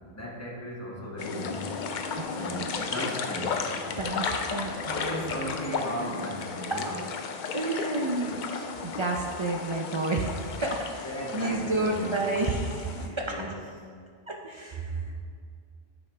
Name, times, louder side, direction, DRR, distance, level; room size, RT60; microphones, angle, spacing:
voice 1, 0.0-1.6 2.3-3.6 4.5-7.0 8.2-8.3 11.0-12.2 12.9-13.5, equal, 15° left, -3 dB, 1.1 m, -36 dB
sound 1, 1.2-13.1, left 5 dB, 55° left, 0.6 m, -34 dB
voice 2, 2.2-2.7 4.0-5.3 7.5-11.1 11.3-13.3 14.3-15.2, right 2 dB, 40° right, 0 dB, 0.4 m, -31 dB
10.5 x 5.0 x 3.3 m, 2.1 s
omnidirectional pair, 1.1 m